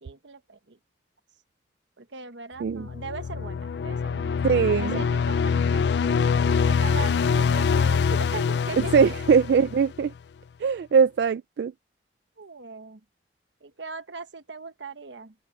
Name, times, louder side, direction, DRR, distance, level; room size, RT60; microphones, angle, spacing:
voice 1, 0.0-0.8 2.0-4.4 4.8-9.1 12.4-13.0 13.6-15.3, right 4 dB, 85° right, 1.3 m, -39 dB
sound 1, 2.7-10.1, left 6 dB, 65° left, 0.3 m, -24 dB
voice 2, 4.4-5.0 8.8-10.1 10.6-11.7, right 6 dB, 65° right, 0.3 m, -21 dB
head